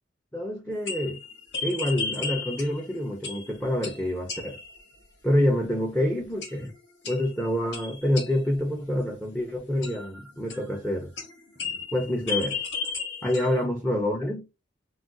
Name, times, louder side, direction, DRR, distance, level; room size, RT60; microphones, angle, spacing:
voice 1, 0.3-1.2 1.6-4.6 5.2-6.7 7.1-11.1 11.9-12.6 13.2-14.5, left 1 dB, 5° left, 0.5 m, -27 dB
sound 1, 0.7-2.9 3.2-3.6 3.8-4.8 6.4-6.8 7.0-8.6 9.8-10.9 11.2-13.6, left 5 dB, 65° left, 0.8 m, -34 dB
2.4 x 2.3 x 3.7 m
head